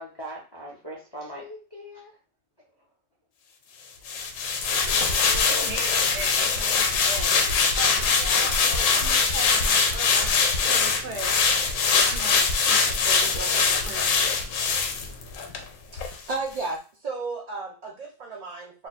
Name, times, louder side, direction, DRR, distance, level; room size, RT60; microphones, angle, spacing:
voice 1, 0.0-2.1 4.9-6.1, right 1 dB, 30° left, -2 dB, 0.5 m, -40 dB
sound 1, 4.1-15.6 16.0-16.1, left 5 dB, 85° left, 1.0 m, -23 dB
voice 2, 5.4-7.3 7.7-10.3 10.6-11.5 11.9-14.2, right 4 dB, 65° right, 3 dB, 1.0 m, -38 dB
voice 3, 15.9-18.9, right 3 dB, 50° right, -3 dB, 0.4 m, -33 dB
2.7 x 2.2 x 4.0 m, 0.34 s
omnidirectional pair, 1.3 m